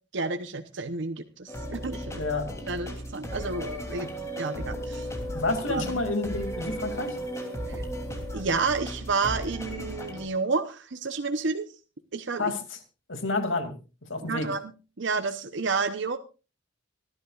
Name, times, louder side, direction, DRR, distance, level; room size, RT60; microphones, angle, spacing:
voice 1, 0.1-2.2 2.7-4.1 4.4-5.1 5.7-6.0 7.7-7.8 8.3-11.7 12.1-12.5 14.3-14.6 15.0-16.2, right 4 dB, 65° right, 8 dB, 0.8 m, -30 dB
sound 1, 1.5-10.3, equal, 15° left, 3.0 m, -35 dB
voice 2, 2.2-2.6 5.2-7.2 12.4-12.8 13.1-13.7 14.0-14.5, left 3 dB, 80° left, 7 dB, 2.5 m, -30 dB
25.5 x 11.0 x 2.4 m, 0.32 s
head